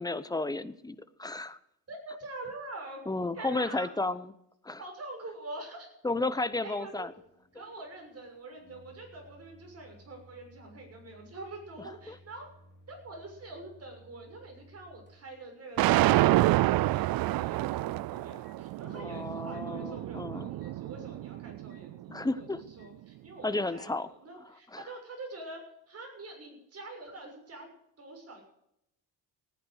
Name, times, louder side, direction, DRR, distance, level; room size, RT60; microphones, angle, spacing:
voice 1, 0.0-1.6 3.1-4.3 4.6-4.8 6.0-7.1 12.1-12.2 18.9-20.5 22.1-22.6 23.4-24.1 24.7-24.8, left 2 dB, 10° left, 14 dB, 0.9 m, -33 dB
voice 2, 1.9-3.0 3.3-3.9 4.8-5.9 6.6-7.1 7.5-12.5 12.9-15.8 16.1-28.4, right 2 dB, 40° right, 2 dB, 6.6 m, -45 dB
Microwave oven, 6.5-19.1 19.5-19.7 20.6-20.8 21.7-21.9 22.8-22.9, equal, 30° left, 3.3 m, -60 dB
sound 1, 15.8-21.9, right 17 dB, 65° right, 0.5 m, -28 dB
17.5 x 10.5 x 6.5 m, 0.78 s
cardioid pair, 105°, 38 cm